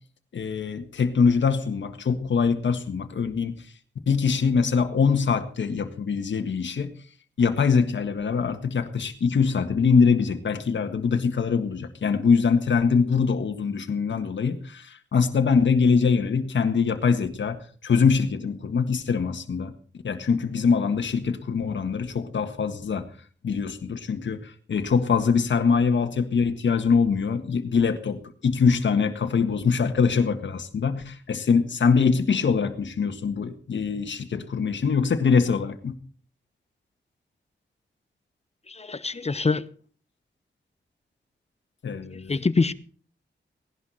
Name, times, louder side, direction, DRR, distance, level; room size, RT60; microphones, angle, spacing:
voice 1, 0.3-3.5 4.1-6.9 7.4-17.6 17.8-19.7 20.0-23.0 23.4-35.9 41.8-42.3, left 5 dB, 75° left, 6 dB, 1.7 m, -23 dB
voice 2, 38.7-39.7 42.1-42.7, left 4 dB, 35° left, 14 dB, 1.0 m, -25 dB
17.5 x 11.5 x 4.3 m, 0.42 s
cardioid pair, 60°, 19 cm